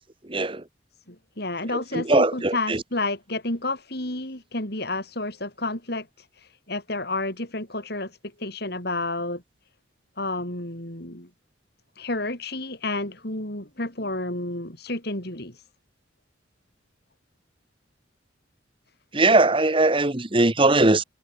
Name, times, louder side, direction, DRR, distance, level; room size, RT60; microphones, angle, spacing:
voice 1, 0.2-0.6 1.7-2.8 19.1-21.0, right 2 dB, 25° right, 1.3 m, -20 dB
voice 2, 1.1-6.1 6.7-8.1 8.4-9.4 10.2-11.3 12.0-15.6, left 2 dB, 55° left, 6.4 m, -30 dB
head